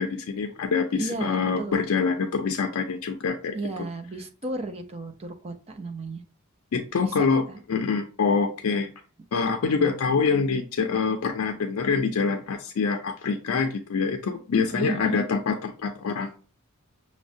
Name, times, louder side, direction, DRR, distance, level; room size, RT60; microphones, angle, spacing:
voice 1, 0.0-3.5 6.7-8.9 9.3-16.4, left 5 dB, 75° left, 5 dB, 0.4 m, -25 dB
voice 2, 1.0-1.9 3.5-6.2 7.0-7.6 9.8-9.9 14.7-15.3, right 2 dB, 30° right, 5 dB, 0.4 m, -34 dB
6.1 x 2.1 x 2.6 m, 0.37 s
head